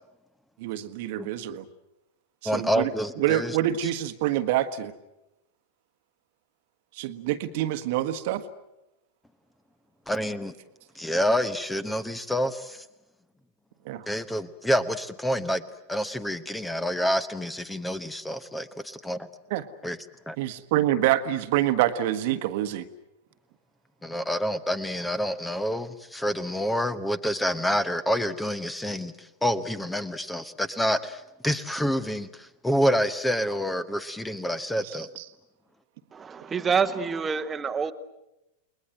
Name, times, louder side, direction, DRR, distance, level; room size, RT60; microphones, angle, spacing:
voice 1, 0.6-1.6 2.5-2.9 3.2-4.9 7.0-8.4 13.9-14.0 19.5-19.6 20.4-22.8 35.2-35.3, right 13 dB, 50° right, 10 dB, 1.4 m, -26 dB
voice 2, 2.4-3.6 10.1-10.5 11.0-12.8 14.1-15.6 15.9-19.3 19.8-20.0 20.3-20.4 24.0-35.1, equal, 5° left, 14 dB, 1.1 m, -28 dB
voice 3, 36.1-37.9, right 6 dB, 20° right, 10 dB, 1.3 m, -27 dB
30.0 x 21.0 x 7.9 m, 0.90 s
figure-of-eight pair, 90°, 0 cm